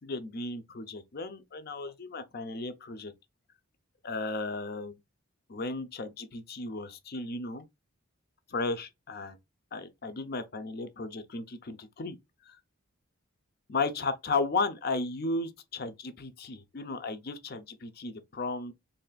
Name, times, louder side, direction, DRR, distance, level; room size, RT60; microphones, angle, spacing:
voice 1, 0.0-3.1 4.0-5.0 5.5-7.6 8.5-9.4 9.7-12.2 12.5-12.6 13.7-18.7, left 3 dB, 45° left, 0.6 m, -34 dB
4.1 x 3.2 x 2.3 m
head